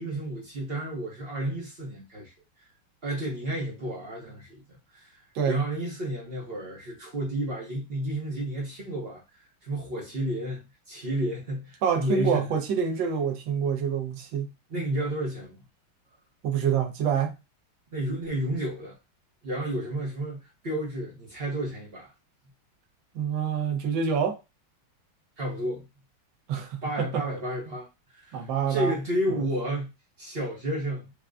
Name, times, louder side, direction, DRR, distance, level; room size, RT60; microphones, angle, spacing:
voice 1, 0.0-2.3 3.0-5.2 5.5-9.2 9.6-12.5 14.7-15.6 17.9-19.0 19.4-22.1 25.4-25.9 26.8-27.9 28.1-29.9 30.2-31.1, right 1 dB, 45° right, 0.8 m, -31 dB
voice 2, 5.3-5.6 11.8-14.5 14.7-14.8 16.4-17.3 23.1-24.4 26.5-27.2 28.3-28.9, right 7 dB, 70° right, 1.5 m, -27 dB
4.6 x 2.2 x 2.4 m
omnidirectional pair, 2.3 m